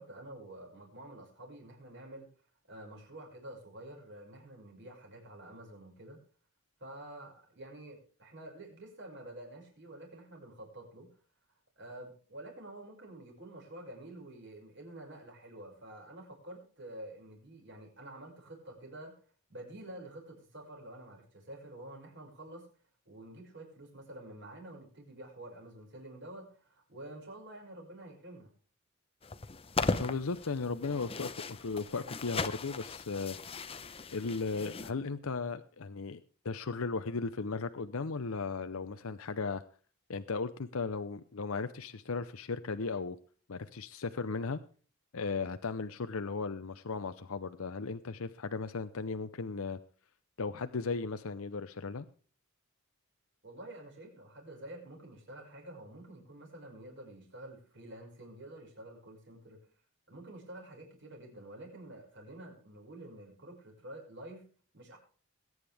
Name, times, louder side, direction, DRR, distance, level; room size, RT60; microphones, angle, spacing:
voice 1, 0.0-2.3 2.7-6.2 6.8-11.1 11.8-19.1 19.5-22.7 23.1-28.5 53.4-59.6 60.1-64.4 64.7-65.0, right 1 dB, 55° right, 0 dB, 5.8 m, -49 dB
sound 1, 29.2-34.9, left 3 dB, 25° left, 0.7 m, -37 dB
voice 2, 30.0-33.4 34.1-39.6 40.1-43.2 43.5-44.6 45.1-49.8 50.4-52.1, left 4 dB, 75° left, 10 dB, 0.7 m, -36 dB
21.5 x 9.6 x 3.4 m, 0.41 s
head